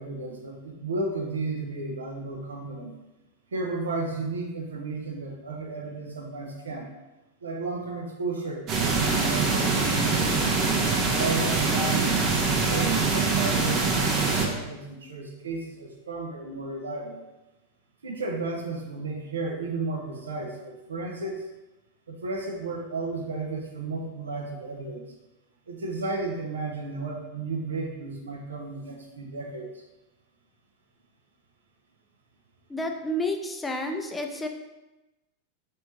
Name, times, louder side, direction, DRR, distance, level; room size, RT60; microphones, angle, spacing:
voice 1, 0.0-2.9 3.5-6.9 7.4-10.4 11.1-17.2 18.0-21.5 22.1-25.1 25.7-29.8, right 3 dB, 70° right, 1 dB, 0.8 m, -33 dB
sound 1, 8.7-14.5, right 4 dB, 35° right, 0.9 m, -24 dB
voice 2, 32.7-34.5, left 1 dB, 10° left, 3 dB, 0.5 m, -30 dB
4.6 x 3.3 x 3.1 m, 1.0 s
figure-of-eight pair, 90°, 0 cm